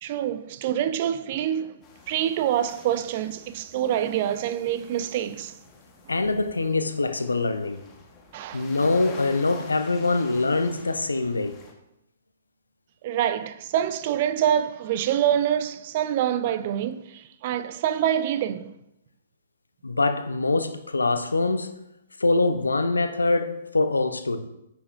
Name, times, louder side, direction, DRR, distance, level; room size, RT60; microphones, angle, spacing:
voice 1, 0.0-1.8 2.1-5.6 8.3-8.7 13.0-18.8, right 10 dB, 45° right, 0.4 m, -26 dB
sound 1, 1.8-11.7, left 4 dB, 25° left, 1.1 m, -48 dB
voice 2, 6.1-7.9 8.5-11.6 19.8-21.8 22.2-24.4, left 3 dB, 85° left, 0.6 m, -24 dB
8.9 x 5.3 x 2.5 m
figure-of-eight pair, 120°, 0 cm